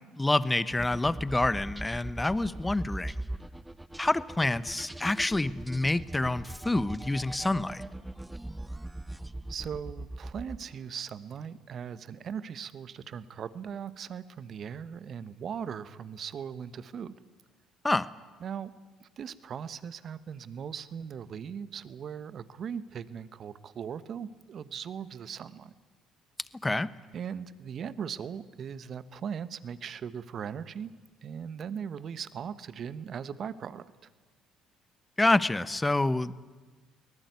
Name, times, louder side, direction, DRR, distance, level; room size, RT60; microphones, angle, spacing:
voice 1, 0.0-3.1 4.0-7.8 17.8-18.1 26.6-26.9 35.2-36.3, left 2 dB, 15° left, 16 dB, 1.0 m, -27 dB
sound 1, 0.7-10.9, right 1 dB, 10° right, 0.7 m, -41 dB
voice 2, 9.5-17.2 18.4-18.7 19.0-25.7 27.1-30.9 31.2-33.8, right 7 dB, 50° right, 14 dB, 1.2 m, -39 dB
23.5 x 19.0 x 9.6 m, 1.3 s
hypercardioid pair, 60°, 0 cm